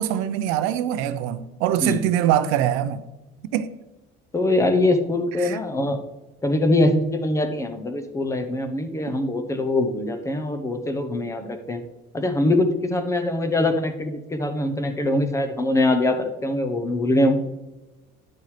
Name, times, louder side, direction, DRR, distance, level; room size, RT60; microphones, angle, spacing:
voice 1, 0.0-3.0 3.5-3.7 5.4-5.6, right 11 dB, 85° right, 0.7 m, -23 dB
voice 2, 4.3-6.0 6.4-11.8 12.1-17.4, left 1 dB, 15° left, 0.8 m, -23 dB
10.5 x 6.6 x 3.3 m
cardioid pair, 140°, 20 cm